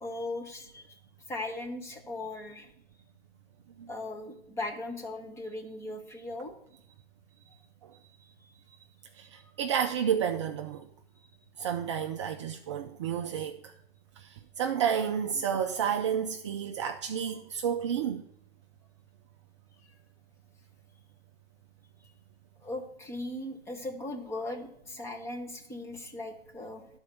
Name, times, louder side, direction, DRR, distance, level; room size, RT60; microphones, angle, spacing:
voice 1, 0.0-1.0 1.3-2.7 3.9-6.5 7.5-7.6 15.3-15.4 22.6-26.8, left 2 dB, 10° left, 0.9 m, -38 dB
voice 2, 9.2-10.9 11.6-13.7 14.2-18.2, right 8 dB, 30° right, 0.4 m, -31 dB
11.5 x 4.4 x 6.7 m
hypercardioid pair, 130°, 31 cm